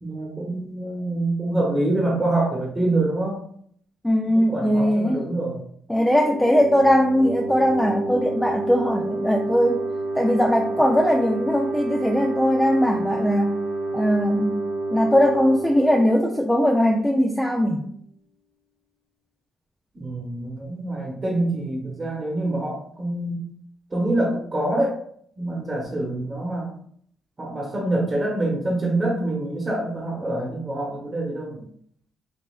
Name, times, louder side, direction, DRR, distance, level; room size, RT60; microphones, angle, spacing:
voice 1, 0.0-3.4 4.3-5.6 19.9-23.4 23.9-25.0 25.4-26.7 27.4-31.7, right 2 dB, 25° right, -3 dB, 1.1 m, -26 dB
voice 2, 4.0-5.3 5.9-9.8 10.1-13.6 13.9-14.6 14.9-17.8, equal, 5° left, 2 dB, 0.4 m, -20 dB
sound 1, 6.0-17.4, right 2 dB, 85° left, 1.5 m, -29 dB
5.2 x 2.4 x 2.4 m, 0.63 s
cardioid pair, 90°, 0 cm